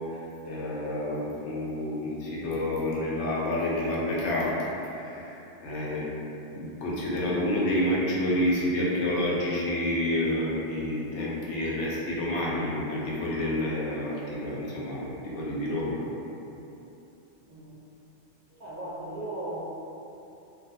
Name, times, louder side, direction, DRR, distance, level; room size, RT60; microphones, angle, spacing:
voice 1, 0.5-6.1 6.5-16.0, left 1 dB, 85° left, -6 dB, 0.9 m, -29 dB
voice 2, 17.5-17.8 18.5-19.6, right 1 dB, 5° left, -13 dB, 0.7 m, -37 dB
2.5 x 2.2 x 2.7 m, 2.9 s
omnidirectional pair, 1.2 m